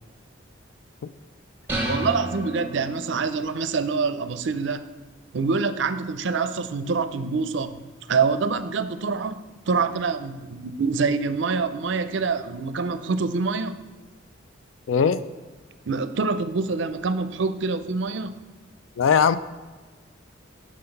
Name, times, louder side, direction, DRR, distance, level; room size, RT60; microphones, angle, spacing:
sound 1, 1.7-3.3, right 1 dB, 10° right, 1.1 m, -30 dB
voice 1, 1.8-4.8 5.3-7.8 8.1-13.8 15.9-18.3, right 4 dB, 65° right, 0.5 m, -26 dB
voice 2, 14.9-15.2 19.0-19.4, left 6 dB, 75° left, 0.4 m, -19 dB
6.4 x 5.8 x 5.3 m
head